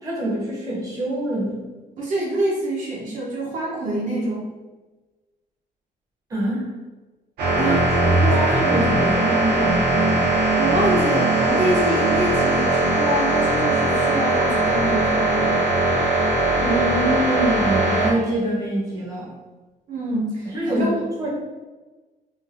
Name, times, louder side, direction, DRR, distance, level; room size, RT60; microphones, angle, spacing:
voice 1, 0.0-1.6 6.3-6.7 7.6-7.8 8.0-10.3 16.6-19.3 20.5-20.9 21.2-21.3, right 1 dB, 20° right, -5 dB, 0.8 m, -25 dB
voice 2, 2.0-4.5 7.6-7.8 10.6-15.7 19.9-20.9, right 1 dB, 55° right, -4 dB, 0.7 m, -25 dB
sound 1, 7.4-18.1, right 2 dB, 90° right, 0.9 m, -20 dB
3.2 x 2.5 x 2.4 m, 1.2 s
cardioid pair, 160°, 15 cm